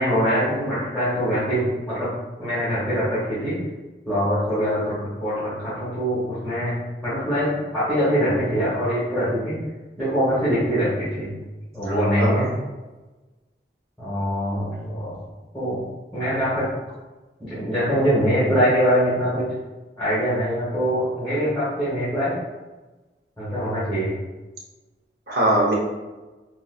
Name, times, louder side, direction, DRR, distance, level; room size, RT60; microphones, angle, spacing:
voice 1, 0.0-2.1 2.4-3.6 4.0-6.7 7.0-7.5 7.7-9.5 10.0-11.4 11.7-12.5 14.0-15.1 15.5-15.8 16.1-16.6 17.4-19.4 20.0-22.4 23.4-24.1, equal, 5° left, -13 dB, 1.3 m, -23 dB
voice 2, 11.9-12.5 25.3-25.7, right 1 dB, 60° right, -4 dB, 0.9 m, -22 dB
3.9 x 2.6 x 2.4 m, 1.2 s
head